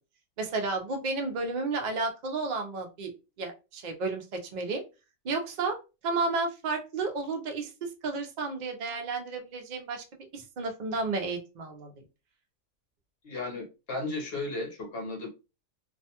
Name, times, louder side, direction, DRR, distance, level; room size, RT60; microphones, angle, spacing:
voice 1, 0.4-3.1 3.4-4.8 5.2-5.8 6.0-12.0, right 3 dB, 55° right, 0.5 m, -32 dB
voice 2, 13.2-15.3, left 2 dB, 50° left, 1.0 m, -35 dB
2.5 x 2.2 x 2.8 m
omnidirectional pair, 1.4 m